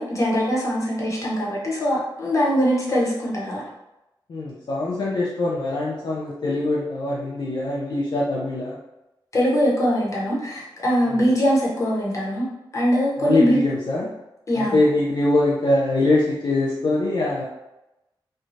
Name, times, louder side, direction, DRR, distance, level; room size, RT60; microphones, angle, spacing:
voice 1, 0.0-3.6 9.3-12.5 12.7-13.6 14.5-14.8, equal, 40° left, -4 dB, 0.8 m, -22 dB
voice 2, 4.3-8.8 11.1-11.3 13.2-14.1 14.5-17.4, left 2 dB, 60° left, -5 dB, 0.4 m, -23 dB
3.1 x 2.2 x 2.6 m, 0.94 s
wide cardioid pair, 120°, 9 cm